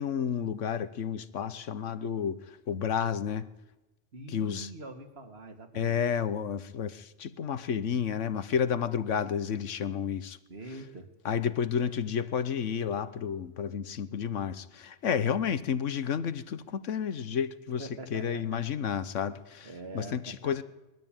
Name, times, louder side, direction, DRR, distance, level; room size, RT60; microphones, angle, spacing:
voice 1, 0.0-3.5 4.3-4.7 5.7-10.4 11.2-19.7 19.9-20.6, left 7 dB, 85° left, 1.3 m, -31 dB
voice 2, 4.1-6.1 10.5-11.1 17.8-18.7 19.6-20.6, right 2 dB, 60° right, 2.4 m, -44 dB
21.5 x 14.0 x 9.0 m
omnidirectional pair, 1.2 m